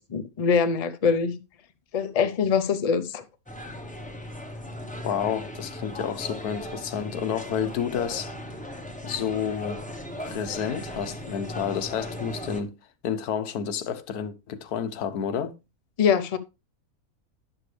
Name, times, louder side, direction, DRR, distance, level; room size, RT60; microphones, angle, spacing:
voice 1, 0.0-1.4 1.9-3.2 16.0-16.4, left 6 dB, 45° left, 0.5 m, -23 dB
sound 1, 3.5-12.6, left 1 dB, 5° left, 0.9 m, -37 dB
voice 2, 5.0-8.3 9.0-9.9 10.2-12.8 13.0-15.6, left 8 dB, 85° left, 1.4 m, -30 dB
11.0 x 6.8 x 3.3 m
omnidirectional pair, 1.6 m